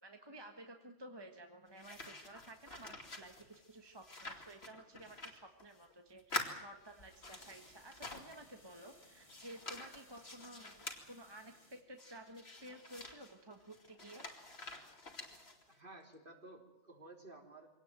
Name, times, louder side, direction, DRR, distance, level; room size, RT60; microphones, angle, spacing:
voice 1, 0.0-14.3, right 1 dB, 20° right, 4 dB, 1.5 m, -54 dB
sound 1, 1.7-5.9 6.2-8.5 8.9-11.0 12.0-15.8, left 2 dB, 60° left, 3.0 m, -47 dB
sound 2, 6.8-11.8, left 1 dB, 25° left, 2.8 m, -64 dB
voice 2, 15.7-17.7, right 2 dB, 45° right, 3 dB, 3.6 m, -54 dB
24.0 x 18.0 x 9.0 m, 0.83 s
omnidirectional pair, 1.2 m